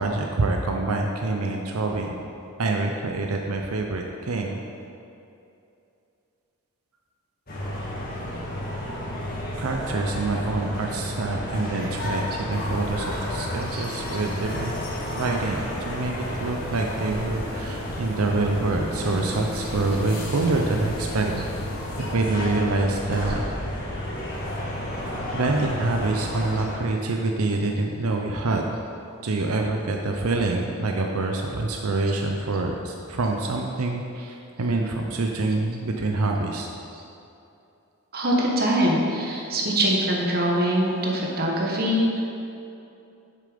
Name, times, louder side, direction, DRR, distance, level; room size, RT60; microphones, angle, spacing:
voice 1, 0.0-2.2 2.6-4.6 9.6-14.8 15.1-21.5 22.1-23.4 25.3-28.6 29.2-36.7, right 2 dB, 85° right, 2 dB, 0.6 m, -26 dB
sound 1, 7.5-26.7, left 1 dB, 40° left, 1.8 m, -32 dB
sound 2, 12.5-22.1, left 1 dB, 70° left, 1.1 m, -39 dB
voice 2, 38.1-42.2, equal, 45° right, -2 dB, 1.3 m, -23 dB
7.6 x 6.6 x 5.1 m, 2.7 s
head